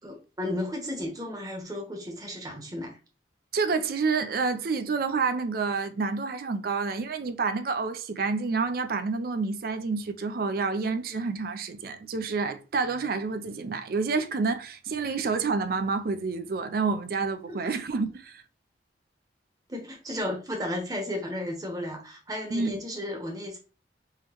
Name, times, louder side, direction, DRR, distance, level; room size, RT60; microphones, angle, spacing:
voice 1, 0.0-3.0 17.6-17.7 19.7-23.6, left 1 dB, 20° right, 1.0 m, -34 dB
voice 2, 3.5-18.4 22.5-22.7, right 4 dB, 55° right, 0.4 m, -28 dB
3.7 x 3.0 x 2.9 m
head